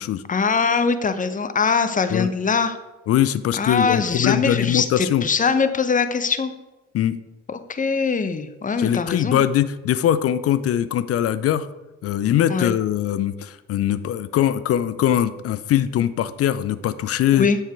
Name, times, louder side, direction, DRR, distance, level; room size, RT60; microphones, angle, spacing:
voice 1, 0.3-2.8 3.6-6.5 7.5-9.4 12.5-12.7 17.3-17.6, left 5 dB, 20° left, 10 dB, 0.9 m, -22 dB
voice 2, 3.1-5.2 6.9-7.2 8.8-11.7 12.0-17.5, left 11 dB, 35° left, 14 dB, 0.6 m, -21 dB
10.0 x 7.5 x 4.6 m, 1.0 s
figure-of-eight pair, 55°, 41 cm